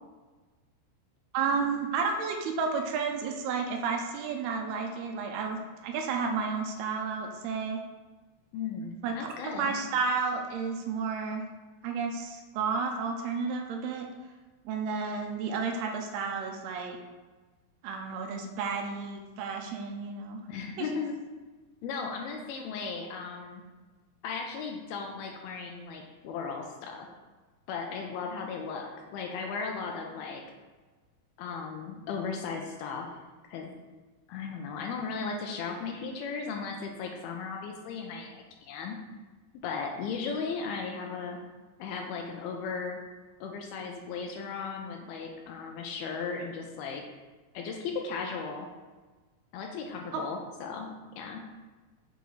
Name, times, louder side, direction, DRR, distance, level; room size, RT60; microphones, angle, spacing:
voice 1, 1.3-7.8 9.0-11.4 11.8-14.1 14.7-17.0 17.8-20.4 20.8-20.9 50.1-50.2, right 5 dB, 85° right, 3 dB, 2.6 m, -32 dB
voice 2, 8.5-9.8 20.5-21.1 21.8-23.6 24.2-27.1 27.7-30.4 31.4-33.1 33.5-33.7 34.3-39.0 39.6-41.4 41.8-43.0 43.4-47.0 47.5-48.7 49.5-51.4, left 5 dB, 80° left, 2 dB, 2.4 m, -36 dB
6.9 x 4.7 x 4.0 m, 1.3 s
omnidirectional pair, 4.7 m